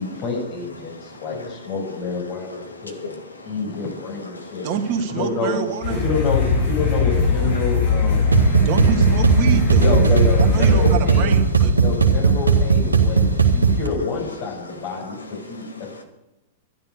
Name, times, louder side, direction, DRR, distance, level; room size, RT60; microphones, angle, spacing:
voice 1, 0.0-3.2 3.4-4.7 5.1-5.6 6.0-8.3 8.6-9.1 9.8-11.3 11.8-15.2 15.5-15.7, left 4 dB, 45° left, 7.3 m, -28 dB
voice 2, 1.0-1.5 3.0-3.5 4.3-4.7 8.2-8.7 13.3-14.1 15.0-16.0, left 3 dB, 85° left, 2.6 m, -37 dB
voice 3, 4.6-6.0 8.6-9.9 10.4-11.8, right 7 dB, 50° right, 2.3 m, -26 dB
sound 1, 5.8-10.9, left 5 dB, 60° left, 7.1 m, -21 dB
sound 2, 8.3-13.9, right 5 dB, 90° right, 2.0 m, -17 dB
12.0 x 12.0 x 6.7 m
figure-of-eight pair, 100°, 0 cm